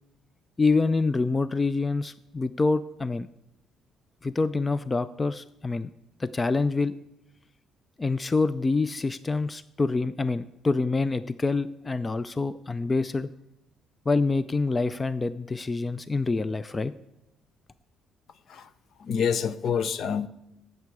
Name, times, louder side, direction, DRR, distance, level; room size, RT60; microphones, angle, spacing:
voice 1, 0.6-3.3 4.2-5.9 6.2-7.0 8.0-13.3 14.1-16.9, left 3 dB, 25° left, 0.4 m, -26 dB
voice 2, 19.0-20.3, left 7 dB, 60° left, 0.6 m, -27 dB
15.5 x 6.7 x 4.7 m
cardioid pair, 95°, 0 cm